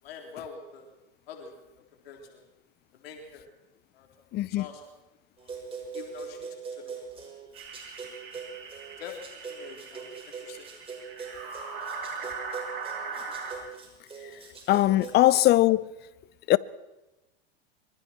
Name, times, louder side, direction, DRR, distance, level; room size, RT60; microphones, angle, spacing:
voice 1, 0.0-0.9 1.3-1.6 2.0-2.5 2.9-3.5 3.9-4.8 5.9-7.0 9.0-10.7 12.2-12.3, left 6 dB, 75° left, 3.9 m, -45 dB
voice 2, 4.3-4.6 14.7-15.9 16.5-16.6, left 16 dB, 35° left, 0.7 m, -20 dB
sound 1, 5.4-15.4, right 5 dB, 20° right, 5.9 m, -42 dB
sound 2, 7.5-13.5, right 5 dB, 65° right, 7.4 m, -39 dB
25.0 x 24.0 x 4.5 m
hypercardioid pair, 115°, 30 cm